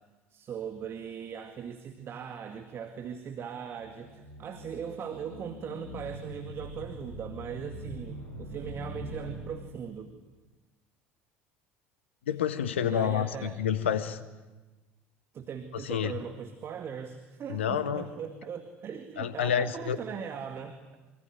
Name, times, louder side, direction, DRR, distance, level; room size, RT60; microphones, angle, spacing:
voice 1, 0.3-10.2 12.8-13.6 15.3-20.8, right 7 dB, 40° right, 7 dB, 2.1 m, -39 dB
sound 1, 3.8-10.2, equal, 85° right, 3.5 m, -43 dB
voice 2, 12.3-14.2 15.8-16.1 17.5-18.1 19.2-20.0, left 8 dB, 70° left, 13 dB, 1.4 m, -29 dB
25.5 x 24.5 x 9.3 m, 1.2 s
figure-of-eight pair, 65°, 7 cm